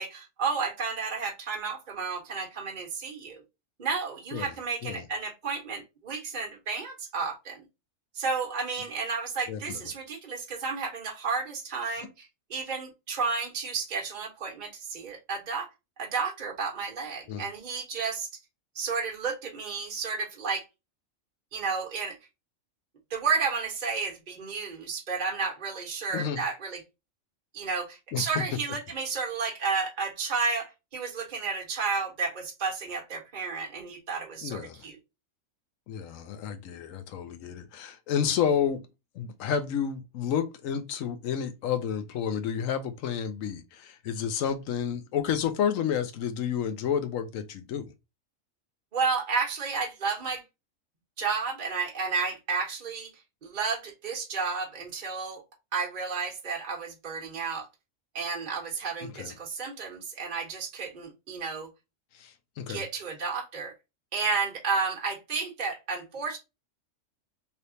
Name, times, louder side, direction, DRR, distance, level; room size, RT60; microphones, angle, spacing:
voice 1, 0.0-3.4 3.8-7.6 8.2-15.7 16.0-18.3 18.8-20.6 21.5-22.1 23.1-26.8 27.5-35.0 48.9-50.4 51.2-53.1 53.4-55.4 55.7-57.7 58.1-61.7 62.7-63.7 64.1-66.4, right 5 dB, 40° right, 1.0 m, -32 dB
voice 2, 9.5-9.8 11.9-12.1 17.3-17.4 26.1-26.4 28.1-28.4 34.4-34.9 35.9-38.8 39.2-47.9 59.0-59.3 62.1-62.8, left 8 dB, 80° left, 1.0 m, -30 dB
3.3 x 2.8 x 2.6 m
omnidirectional pair, 1.4 m